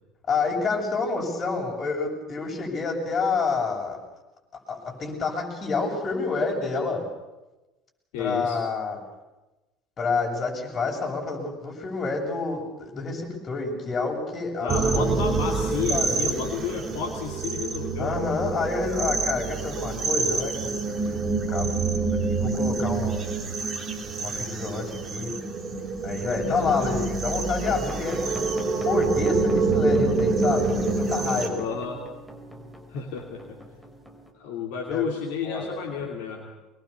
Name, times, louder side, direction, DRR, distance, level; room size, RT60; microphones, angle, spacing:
voice 1, 0.3-4.0 4.5-7.1 8.2-9.0 10.0-15.1 15.9-16.4 18.0-20.7 21.1-23.3 24.2-25.3 26.0-28.4 28.8-31.7 34.9-35.0 35.4-36.0, left 4 dB, 35° left, 0 dB, 7.7 m, -28 dB
voice 2, 8.1-8.6 14.6-18.3 26.2-27.0 28.2-28.4 31.5-32.1 32.9-33.4 34.3-36.5, left 7 dB, 65° left, 0 dB, 2.8 m, -32 dB
sound 1, 14.7-31.5, right 4 dB, 40° right, 3.3 m, -26 dB
sound 2, 27.6-34.3, right 1 dB, 5° right, 4.6 m, -41 dB
24.5 x 21.5 x 7.1 m, 1.1 s
hypercardioid pair, 65°, 0 cm